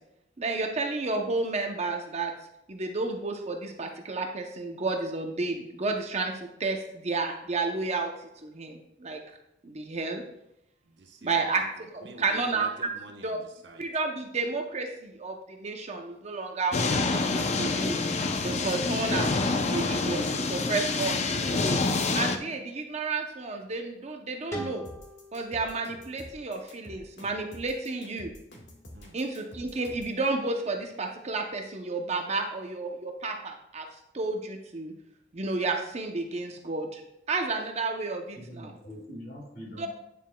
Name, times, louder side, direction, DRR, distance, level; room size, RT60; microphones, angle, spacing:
voice 1, 0.4-2.3 2.7-9.2 9.6-10.2 11.2-12.7 13.2-13.4 13.8-16.8 17.1-21.8 22.1-24.8 25.3-28.3 29.1-33.9 34.1-34.9 35.3-37.0 37.3-38.8 39.8-39.9, right 3 dB, 40° right, 3 dB, 0.7 m, -31 dB
voice 2, 10.9-11.5 12.0-13.9 28.9-29.2, right 2 dB, 75° right, 2 dB, 1.1 m, -48 dB
sound 1, 16.7-22.4, left 3 dB, 40° left, 0.5 m, -27 dB
sound 2, 24.5-27.4, right 1 dB, 15° left, 1.6 m, -42 dB
sound 3, 24.8-30.2, left 1 dB, 80° left, 1.7 m, -48 dB
voice 3, 38.3-39.9, equal, 55° left, -3 dB, 2.8 m, -43 dB
9.4 x 7.1 x 2.2 m, 0.83 s
head